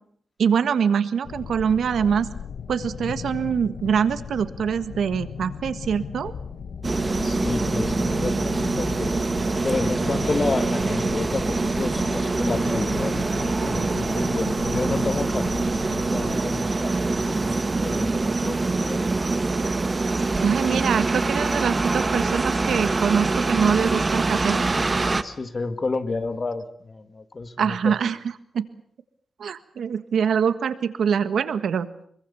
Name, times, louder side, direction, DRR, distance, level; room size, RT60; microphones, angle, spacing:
voice 1, 0.4-2.3 2.7-6.3 20.4-24.6 27.6-28.2 28.5-28.6 29.4-31.9, right 7 dB, 90° right, 12 dB, 1.5 m, -24 dB
sound 1, 1.2-16.4, left 7 dB, 70° left, 1.2 m, -36 dB
sound 2, 6.8-25.2, right 3 dB, 25° right, 1.1 m, -24 dB
voice 2, 7.2-9.1 9.6-19.2 25.2-27.9, left 3 dB, 35° left, 9 dB, 1.9 m, -31 dB
25.0 x 23.0 x 7.0 m, 0.64 s
wide cardioid pair, 140°, 0 cm